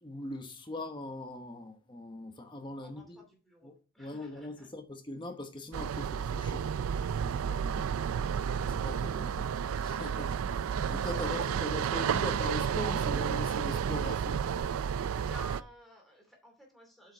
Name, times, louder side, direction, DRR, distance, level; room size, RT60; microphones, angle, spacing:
voice 1, 0.0-3.2 3.6-3.7 4.0-6.7 7.2-7.8 8.6-9.5 9.8-14.4, left 2 dB, 20° left, 1.0 m, -41 dB
voice 2, 2.8-4.7 15.2-17.1, right 1 dB, ahead, 2.6 m, -52 dB
sound 1, 5.7-15.6, right 7 dB, 80° right, 0.3 m, -31 dB
7.4 x 5.3 x 4.5 m
head